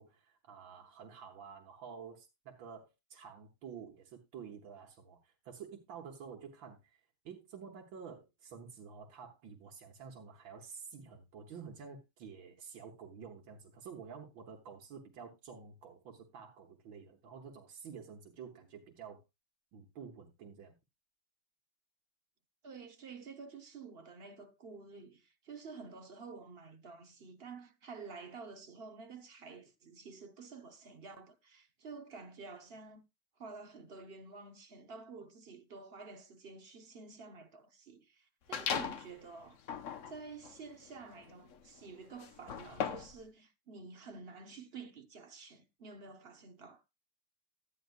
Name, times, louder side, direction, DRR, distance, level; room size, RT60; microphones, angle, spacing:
voice 1, 0.0-7.0 7.3-19.2 19.7-20.8, right 6 dB, 85° right, 2.0 m, -50 dB
voice 2, 22.6-33.0 33.4-39.6 40.1-46.8, right 4 dB, 40° right, 0.9 m, -50 dB
sound 1, 38.5-39.1 39.6-43.2, left 7 dB, 55° left, 0.9 m, -39 dB
13.0 x 9.3 x 2.5 m
omnidirectional pair, 2.0 m